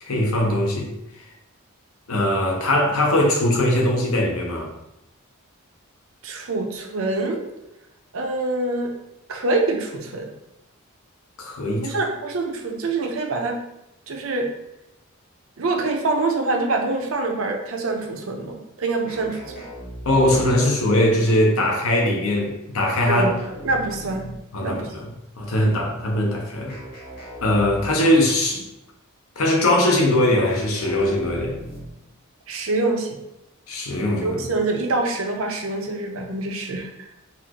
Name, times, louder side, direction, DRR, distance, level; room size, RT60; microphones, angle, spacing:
voice 1, 0.0-0.9 2.1-4.7 11.4-11.9 20.0-23.3 24.5-25.1 25.4-26.7 27.4-28.6 29.4-31.5 33.7-34.4, left 1 dB, 80° left, 0 dB, 0.8 m, -20 dB
voice 2, 6.2-7.4 8.1-8.9 9.3-10.3 11.8-13.6 14.1-14.5 15.6-19.5 20.2-20.4 23.1-23.3 23.6-24.3 24.6-24.9 25.6-25.8 32.5-33.2 34.2-37.1, right 2 dB, 70° right, 3 dB, 0.6 m, -25 dB
sound 1, 19.1-20.8 22.9-24.5 26.7-28.2 30.5-32.1, right 1 dB, 50° left, 1.5 m, -38 dB
4.1 x 2.4 x 2.9 m, 0.87 s
head